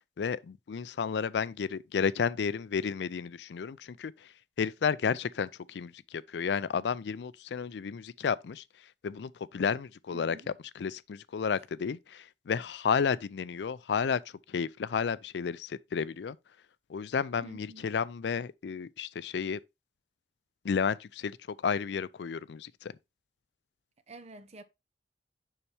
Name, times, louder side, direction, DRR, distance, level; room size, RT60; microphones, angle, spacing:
voice 1, 0.0-4.3 4.6-10.4 10.8-14.2 14.5-16.4 16.9-19.6 20.6-22.9, left 6 dB, 70° left, 0.4 m, -32 dB
voice 2, 10.1-10.5 17.4-17.9 24.1-24.6, right 2 dB, 40° right, 0.7 m, -48 dB
7.0 x 5.8 x 3.3 m
head